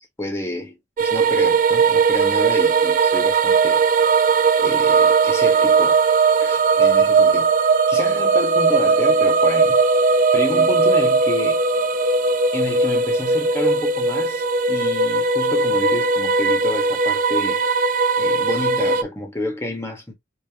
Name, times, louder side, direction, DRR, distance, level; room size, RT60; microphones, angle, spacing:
voice 1, 0.2-3.8 4.6-6.0 6.4-7.5 7.9-9.8 10.3-11.6 12.5-17.7 18.2-20.1, left 1 dB, 15° left, 1.4 m, -29 dB
sound 1, 1.0-19.0, right 4 dB, 45° right, 0.5 m, -18 dB
5.2 x 3.0 x 2.9 m
head